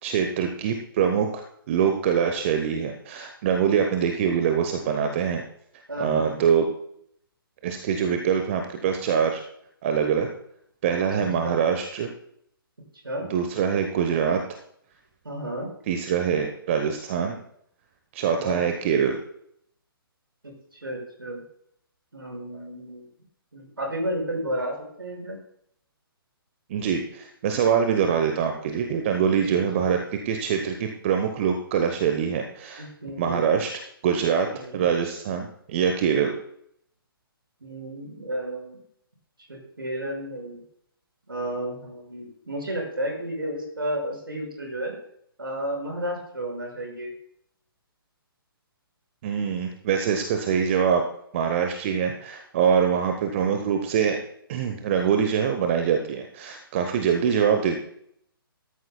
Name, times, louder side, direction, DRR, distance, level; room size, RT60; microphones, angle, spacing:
voice 1, 0.0-5.4 6.0-6.6 7.6-9.4 9.8-10.3 10.8-12.1 13.3-14.4 15.9-17.4 18.1-19.2 26.7-30.0 30.2-32.9 33.2-33.7 34.0-36.4 49.2-51.0 51.3-54.2 54.5-57.8, right 7 dB, 30° right, 5 dB, 1.0 m, -24 dB
voice 2, 5.9-6.6 11.2-11.6 13.0-13.3 15.2-15.7 18.3-18.6 20.4-21.4 22.1-23.1 23.5-25.4 29.4-29.9 32.8-33.5 34.5-34.8 37.6-38.8 39.5-40.6 41.3-44.9 45.4-47.1, right 1 dB, 70° right, 0 dB, 5.7 m, -32 dB
17.5 x 13.0 x 2.3 m, 0.69 s
figure-of-eight pair, 130°, 13 cm